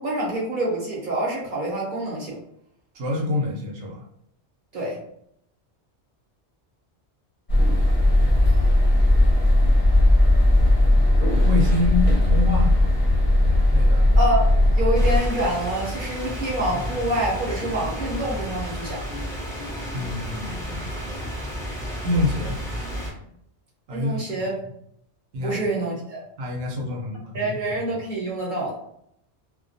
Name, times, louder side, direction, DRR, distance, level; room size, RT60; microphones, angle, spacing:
voice 1, 0.0-2.4 4.7-5.0 14.2-14.5 14.7-19.0 23.9-24.5 25.4-26.2 27.3-28.8, right 1 dB, 50° right, -5 dB, 0.8 m, -26 dB
voice 2, 2.9-4.0 11.4-12.8 13.7-14.1 19.9-20.9 22.0-22.6 23.9-24.3 25.3-25.6 26.4-28.0, left 2 dB, 80° right, -1 dB, 0.9 m, -27 dB
sound 1, 7.5-15.2, left 1 dB, 45° left, 0.8 m, -17 dB
sound 2, 14.9-23.1, equal, 5° left, 0.7 m, -31 dB
2.3 x 2.2 x 2.6 m, 0.74 s
omnidirectional pair, 1.2 m